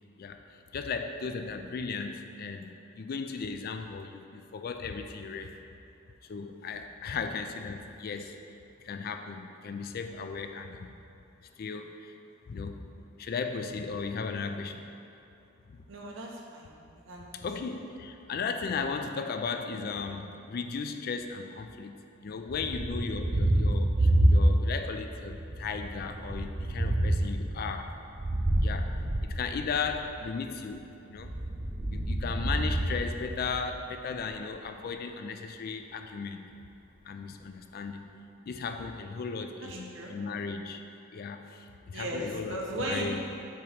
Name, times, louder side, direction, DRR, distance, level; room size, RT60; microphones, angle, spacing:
voice 1, 0.2-5.6 6.2-8.4 8.8-10.9 11.6-12.1 12.5-12.9 13.2-14.9 15.7-15.9 17.3-27.9 28.6-31.3 31.9-36.5 37.0-38.0 38.4-40.8 41.1-43.2, left 5 dB, 50° left, 6 dB, 0.3 m, -36 dB
voice 2, 15.9-16.8 17.0-17.4 39.6-40.2 41.9-43.2, right 1 dB, 75° right, -1 dB, 0.9 m, -37 dB
Thunder, 22.5-24.9 25.2-30.1 31.1-33.8, right 1 dB, 25° right, 0.4 m, -28 dB
6.9 x 3.0 x 4.9 m, 2.6 s
head